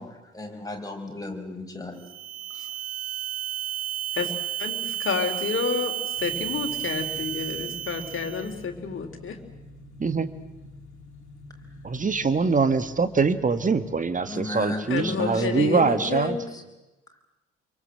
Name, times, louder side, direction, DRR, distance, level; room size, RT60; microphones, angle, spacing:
voice 1, 0.0-2.0 2.5-2.7 14.3-16.1, left 2 dB, 10° left, 2 dB, 5.6 m, -35 dB
sound 1, 2.0-8.6, right 13 dB, 65° right, 2.5 m, -32 dB
voice 2, 4.6-9.4 14.9-16.4, left 5 dB, 40° left, 5 dB, 3.7 m, -29 dB
sound 2, 6.1-14.3, left 1 dB, 80° left, 2.9 m, -47 dB
voice 3, 11.8-16.4, right 4 dB, 25° right, 12 dB, 1.8 m, -23 dB
27.5 x 23.5 x 7.7 m, 1.0 s
figure-of-eight pair, 50°, 33 cm